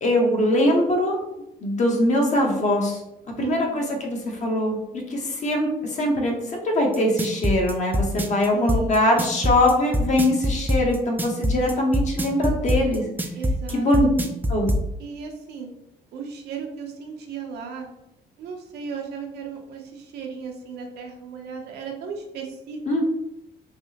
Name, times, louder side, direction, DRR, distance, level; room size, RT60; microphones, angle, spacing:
voice 1, 0.0-1.2 1.6-3.0 3.4-4.8 5.1-13.0 13.7-14.1 14.5-14.7 22.9-23.0, left 1 dB, 45° left, 1 dB, 0.8 m, -22 dB
voice 2, 3.4-3.9 8.5-9.0 13.3-14.1 15.0-15.7 16.1-17.9 18.4-23.0, right 5 dB, 85° right, 2 dB, 0.6 m, -35 dB
sound 1, 6.9-14.8, equal, 10° right, 0.3 m, -23 dB
3.3 x 2.7 x 2.7 m, 0.87 s
cardioid pair, 115°, 17 cm